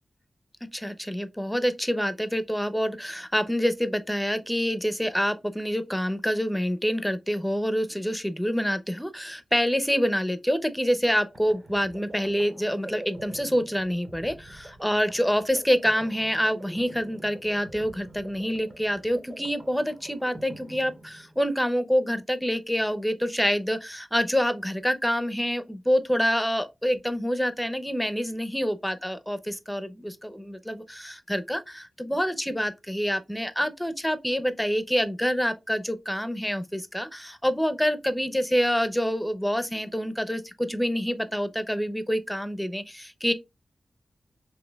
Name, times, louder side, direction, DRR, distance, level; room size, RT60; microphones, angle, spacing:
voice 1, 0.7-43.3, equal, 5° left, 0.6 m, -27 dB
sound 1, 10.8-21.6, right 1 dB, 35° right, 0.9 m, -46 dB
4.1 x 3.0 x 2.2 m
cardioid pair, 60°, 0 cm